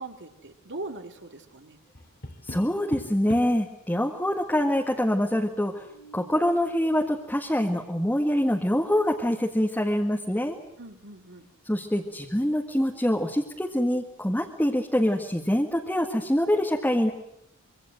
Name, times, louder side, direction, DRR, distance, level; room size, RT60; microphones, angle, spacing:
voice 1, 0.0-1.8 10.8-11.5, right 2 dB, 55° right, 5 dB, 2.7 m, -40 dB
Tap, 1.9-3.7 5.7-6.4, left 1 dB, 45° left, 2.5 m, -41 dB
voice 2, 2.5-5.7 6.1-10.6 11.7-17.1, equal, 10° left, 1 dB, 1.8 m, -25 dB
26.0 x 24.0 x 7.8 m, 0.75 s
head